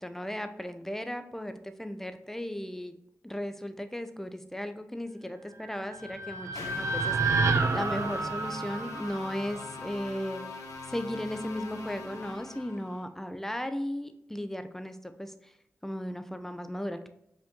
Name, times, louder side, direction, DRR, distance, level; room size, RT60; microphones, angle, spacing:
voice 1, 0.0-3.0 3.2-10.4 10.9-15.5 15.8-17.1, equal, 5° left, 9 dB, 0.4 m, -36 dB
sound 1, 5.7-9.9, right 4 dB, 70° right, 0.4 m, -30 dB
sound 2, 6.6-13.0, left 3 dB, 90° left, 0.7 m, -42 dB
5.0 x 2.6 x 3.6 m, 0.79 s
cardioid pair, 55°, 5 cm